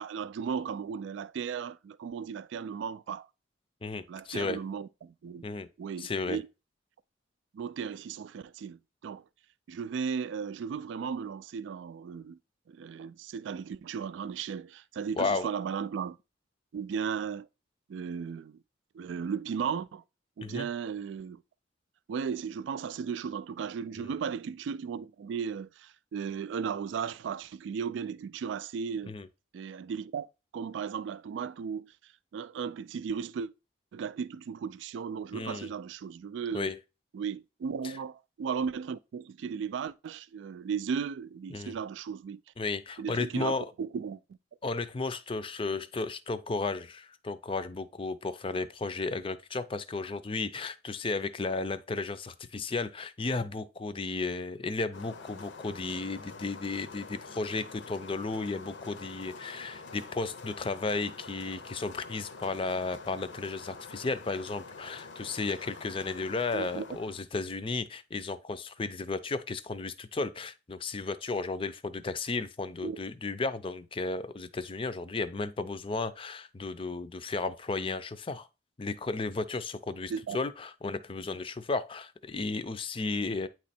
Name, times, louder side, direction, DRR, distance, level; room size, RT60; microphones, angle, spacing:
voice 1, 0.0-3.3 4.1-5.4 5.8-6.5 7.5-9.2 9.7-12.4 12.7-16.2 16.7-17.5 17.9-18.6 18.9-20.0 20.4-21.4 22.1-29.1 29.5-30.3 30.5-33.5 33.9-36.7 37.1-42.4 43.0-44.2 66.5-66.8 72.8-73.0 80.1-80.4, right 6 dB, 75° right, 0.3 m, -36 dB
voice 2, 3.8-4.6 5.4-5.7 6.0-6.4 15.1-15.5 20.4-20.7 24.0-24.1 29.1-29.3 35.3-35.7 36.5-36.8 37.8-38.0 41.5-41.8 42.6-43.7 44.6-78.5 78.8-83.5, left 3 dB, 30° left, 0.4 m, -34 dB
sound 1, 54.9-67.2, left 4 dB, 70° left, 0.7 m, -46 dB
9.2 x 3.1 x 4.2 m
head